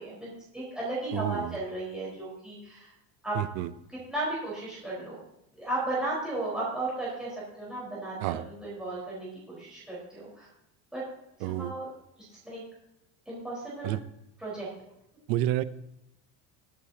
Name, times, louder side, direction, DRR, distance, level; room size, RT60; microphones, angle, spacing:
voice 1, 0.0-2.9 3.2-3.4 4.1-5.2 5.5-10.5 10.9-11.0 11.4-11.9 12.4-12.6 13.3-13.9 14.4-14.7, right 2 dB, ahead, -8 dB, 4.4 m, -35 dB
voice 2, 1.1-1.6 3.3-3.7 8.2-8.4 11.4-11.7 13.8-14.0 15.3-15.6, right 14 dB, 70° right, 14 dB, 0.7 m, -29 dB
22.0 x 8.4 x 2.8 m, 0.81 s
cardioid pair, 155°, 37 cm